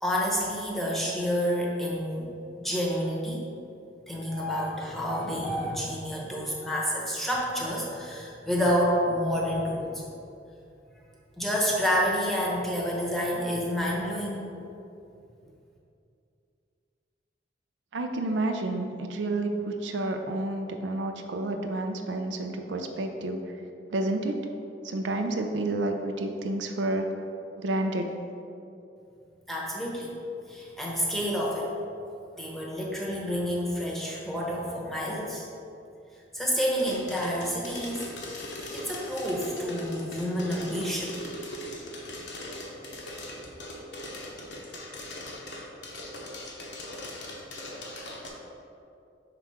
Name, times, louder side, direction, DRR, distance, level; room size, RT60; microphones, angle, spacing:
voice 1, 0.0-2.3 2.6-3.4 4.1-10.0 11.4-14.4 29.5-30.2 30.5-31.7 32.4-35.4 36.3-38.1 38.7-41.2, equal, ahead, -4 dB, 0.9 m, -29 dB
voice 2, 17.9-23.4 23.9-24.4 24.8-27.1 27.6-28.1, right 2 dB, 75° right, 4 dB, 0.5 m, -30 dB
sound 1, 36.8-48.3, left 1 dB, 70° left, 0.9 m, -40 dB
4.8 x 3.5 x 5.6 m, 2.6 s
head